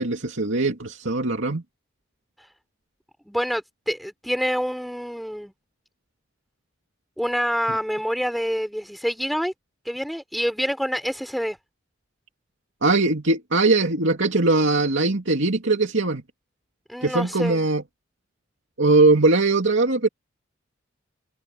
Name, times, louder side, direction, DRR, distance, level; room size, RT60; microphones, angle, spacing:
voice 1, 0.0-1.6 12.8-16.2 17.0-17.8 18.8-20.1, right 3 dB, 75° right, 2.5 m, -20 dB
voice 2, 3.3-5.5 7.2-9.5 9.9-11.6 16.9-17.7, equal, ahead, 3.3 m, -27 dB
open air
head